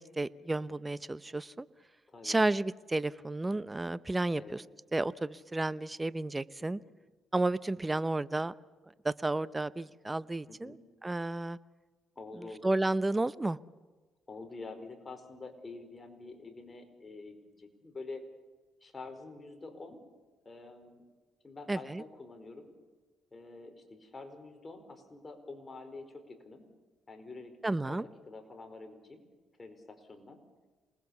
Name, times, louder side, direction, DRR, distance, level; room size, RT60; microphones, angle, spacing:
voice 1, 0.0-1.7 2.2-4.6 4.9-6.8 7.3-8.5 9.0-11.6 12.6-13.6 21.7-22.0 27.6-28.1, right 2 dB, 15° right, 16 dB, 0.8 m, -32 dB
voice 2, 2.1-2.4 4.4-4.6 6.6-6.8 10.5-10.8 12.2-12.7 14.3-18.2 18.8-20.0 20.4-21.0 21.4-22.7 23.3-26.6 27.1-29.2 29.6-30.4, left 3 dB, 25° left, 6 dB, 4.6 m, -47 dB
27.5 x 20.5 x 7.1 m, 1.3 s
cardioid pair, 90°, 0 cm